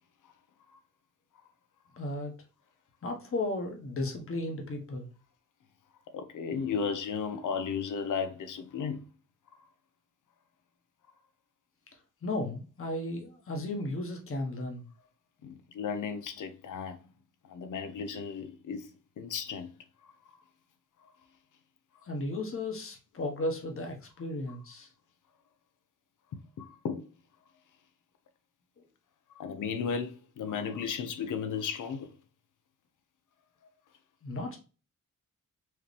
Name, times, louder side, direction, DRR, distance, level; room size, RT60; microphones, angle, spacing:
voice 1, 2.0-2.3 3.0-5.1 12.2-14.8 22.0-24.9 28.8-28.9 34.2-34.6, left 2 dB, 45° left, 1.3 m, -35 dB
voice 2, 6.1-9.1 15.4-17.0 17.4-18.9 19.2-19.7 20.3-20.4 26.6-27.1 29.3-32.1, left 6 dB, 75° left, 0.8 m, -35 dB
4.7 x 2.9 x 3.3 m
wide cardioid pair, 125°, 31 cm